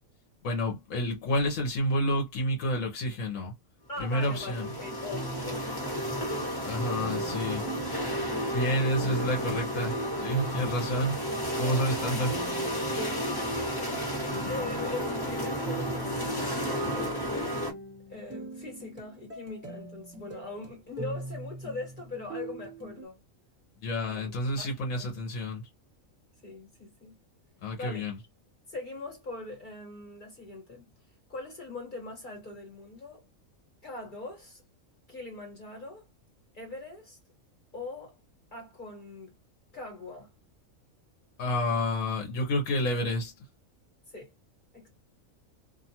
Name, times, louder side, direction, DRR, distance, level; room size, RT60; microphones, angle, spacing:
voice 1, 0.4-3.5 4.0-4.7 6.6-7.6 8.5-11.2 11.6-12.4 23.8-25.6 27.6-28.2 41.4-43.3, left 1 dB, 75° left, 1.2 m, -29 dB
voice 2, 3.9-6.1 10.5-11.0 13.3-17.4 18.1-23.2 24.1-24.7 25.0-25.1 26.4-27.1 27.7-28.0 28.7-30.9 31.3-33.2 33.8-34.6 35.1-36.0 36.5-37.2 37.7-38.1 38.5-39.3 39.7-40.3 44.1-44.3 44.7-44.9, left 2 dB, 40° left, 1.4 m, -41 dB
sound 1, 3.9-17.7, equal, 20° left, 1.0 m, -32 dB
sound 2, 5.1-23.0, right 2 dB, 10° right, 1.2 m, -42 dB
2.5 x 2.4 x 2.8 m
omnidirectional pair, 1.4 m